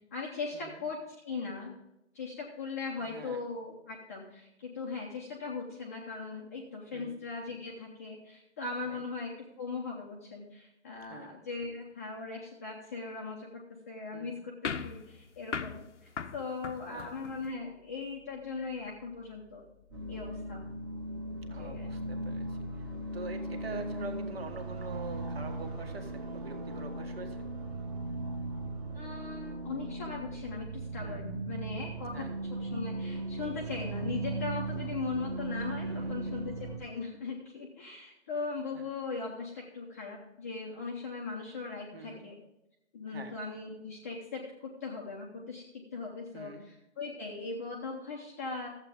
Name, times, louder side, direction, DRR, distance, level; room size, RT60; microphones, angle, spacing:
voice 1, 0.1-1.7 2.1-13.5 13.9-19.6 20.1-20.7 21.5-21.9 28.9-32.3 32.6-42.4 42.9-48.7, left 4 dB, 15° left, -3 dB, 0.7 m, -39 dB
voice 2, 3.0-3.4 6.9-7.2 8.8-9.0 11.0-11.3 14.1-14.4 16.9-17.2 21.5-27.4 31.0-31.3 32.1-32.4 35.8-36.2 38.7-38.8 41.9-42.3 43.1-43.4 46.3-46.6, right 3 dB, 55° right, 5 dB, 1.7 m, -45 dB
sound 1, 14.6-17.5, left 6 dB, 75° left, 0.8 m, -39 dB
sound 2, 19.9-36.8, right 2 dB, 20° right, 1.3 m, -38 dB
13.5 x 8.0 x 3.5 m, 0.89 s
figure-of-eight pair, 150°, 36 cm